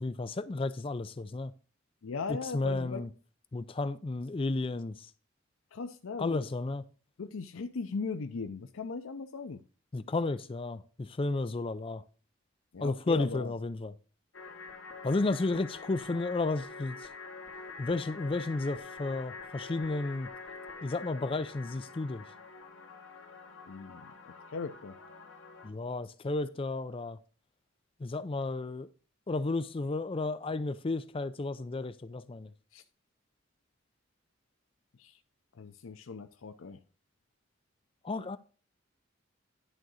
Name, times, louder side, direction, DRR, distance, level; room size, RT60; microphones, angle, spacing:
voice 1, 0.0-1.5 2.3-3.1 3.5-4.9 6.2-6.8 9.9-10.8 11.2-12.0 12.8-13.9 15.0-17.0 17.8-20.3 20.8-22.2 25.6-27.2 28.0-28.9 29.3-32.5 38.0-38.4, left 3 dB, 25° left, 0.4 m, -32 dB
voice 2, 2.0-3.0 5.7-6.4 7.2-9.6 12.7-13.5 23.7-24.1 24.5-24.9 32.7-32.8 35.0-35.2 35.6-36.8, left 4 dB, 90° left, 0.6 m, -38 dB
sound 1, 14.3-25.7, left 4 dB, 70° left, 1.7 m, -46 dB
11.0 x 3.9 x 6.2 m
head